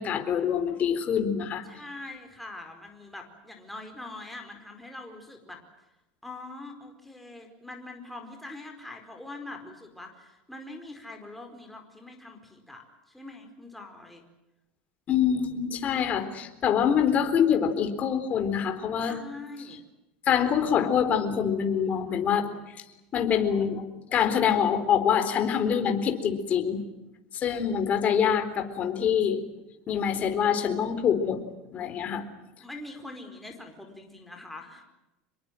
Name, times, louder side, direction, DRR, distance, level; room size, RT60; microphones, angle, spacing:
voice 1, 0.0-1.6 15.1-19.2 20.3-22.6 23.1-26.8 27.3-29.4 29.9-31.4 31.7-32.3, left 8 dB, 40° left, 8 dB, 4.0 m, -25 dB
voice 2, 1.6-5.6 6.2-14.2 19.1-19.8 32.6-34.8, left 2 dB, 5° left, 3 dB, 4.7 m, -43 dB
26.5 x 22.0 x 7.8 m, 0.98 s
supercardioid pair, 120°, 4 cm